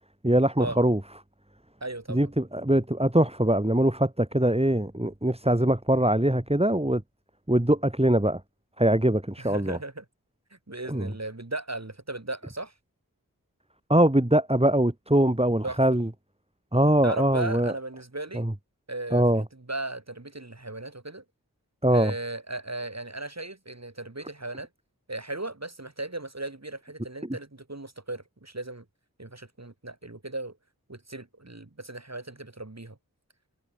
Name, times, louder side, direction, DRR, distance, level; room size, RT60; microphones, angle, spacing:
voice 1, 0.2-1.0 2.1-7.0 7.5-8.4 8.8-9.8 10.9-11.1 13.9-16.1 16.7-17.7 18.3-18.5 19.1-19.4 21.8-22.1, right 1 dB, 15° right, 4.0 m, -22 dB
voice 2, 1.8-2.3 4.4-4.6 9.4-10.0 10.5-12.7 15.6-15.8 17.0-18.5 18.9-19.2 19.5-21.2 21.9-24.7 25.1-28.8 29.2-30.6 30.9-33.0, right 2 dB, 45° right, 4.6 m, -36 dB
wide cardioid pair, 45°, 35 cm